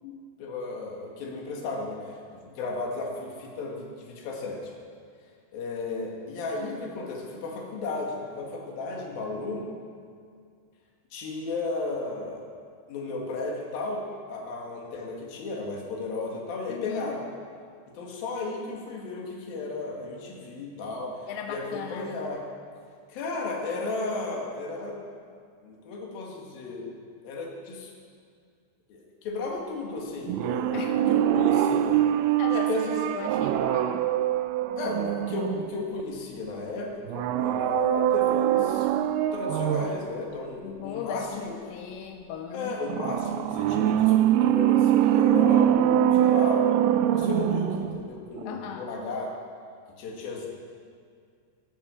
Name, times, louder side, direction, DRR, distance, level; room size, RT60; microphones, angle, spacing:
voice 1, 0.4-4.6 5.5-9.7 11.1-12.5 12.9-17.3 17.9-21.1 21.5-22.4 23.1-25.0 25.6-26.9 27.2-27.9 28.9-32.0 32.5-33.2 34.8-38.9 39.3-41.5 42.5-49.3 50.0-50.5, left 3 dB, 60° left, -1 dB, 3.5 m, -34 dB
voice 2, 16.7-17.2 21.3-22.1 30.7-31.0 31.3-31.5 32.4-32.7 33.1-34.1 40.6-42.8 48.4-48.9, left 8 dB, 90° left, 4 dB, 3.1 m, -37 dB
sound 1, 30.3-36.0 37.1-40.1 42.9-48.1 48.4-48.5, right 11 dB, 85° right, 2.3 m, -23 dB
18.0 x 7.3 x 7.0 m, 2.2 s
omnidirectional pair, 4.9 m